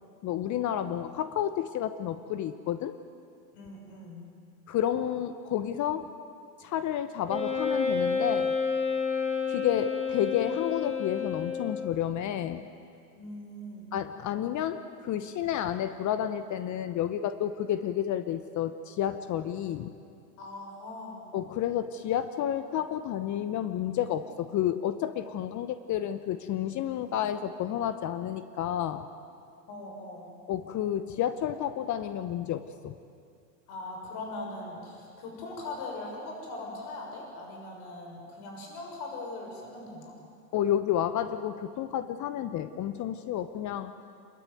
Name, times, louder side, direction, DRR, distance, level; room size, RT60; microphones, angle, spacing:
voice 1, 0.2-2.9 4.7-6.1 6.6-8.6 9.5-12.7 13.9-19.9 21.3-29.1 30.5-32.9 40.5-43.9, left 10 dB, 35° left, 11 dB, 0.9 m, -30 dB
voice 2, 3.5-4.2 13.2-13.9 20.4-21.3 29.7-30.3 33.7-40.1, left 2 dB, 55° left, 1 dB, 6.6 m, -40 dB
Wind instrument woodwind instrument, 7.3-11.9, left 5 dB, 15° left, 3.7 m, -30 dB
27.0 x 13.5 x 9.3 m, 2.4 s
hypercardioid pair, 95°, 49 cm